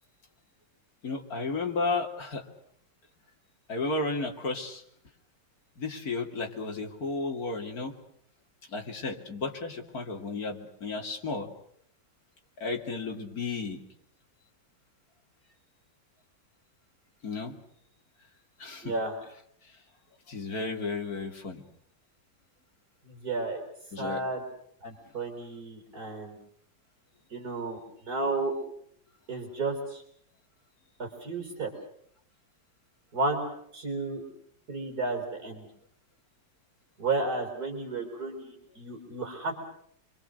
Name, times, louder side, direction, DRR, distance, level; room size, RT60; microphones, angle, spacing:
voice 1, 1.0-2.4 3.7-4.8 5.8-7.9 8.7-11.5 12.6-13.8 17.2-17.5 18.6-18.9 20.3-21.6 23.9-24.2, left 3 dB, 50° left, 3 dB, 3.0 m, -33 dB
voice 2, 18.8-19.2 23.0-23.6 24.0-24.4 24.8-26.4 27.3-28.5 29.3-30.0 31.0-31.7 33.1-33.4 33.7-34.2 34.7-35.7 37.0-39.6, right 3 dB, 50° right, 4 dB, 4.4 m, -32 dB
28.0 x 23.0 x 6.5 m, 0.68 s
omnidirectional pair, 2.1 m